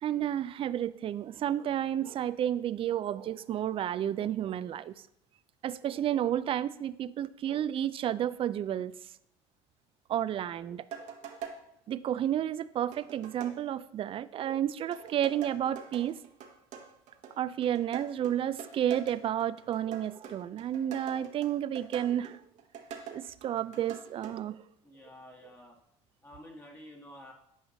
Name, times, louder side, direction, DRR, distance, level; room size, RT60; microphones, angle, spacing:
voice 1, 0.0-4.9 5.6-8.9 10.1-11.4 11.9-16.2 17.4-22.4 23.1-24.6, right 10 dB, 40° right, 16 dB, 0.4 m, -31 dB
sound 1, 10.9-11.6 12.9-13.6 14.9-24.3, right 7 dB, 60° right, 1.1 m, -44 dB
voice 2, 24.8-25.8 26.2-27.3, left 1 dB, 15° left, 0 dB, 1.3 m, -50 dB
8.7 x 5.1 x 3.9 m, 0.75 s
supercardioid pair, 80°, 14 cm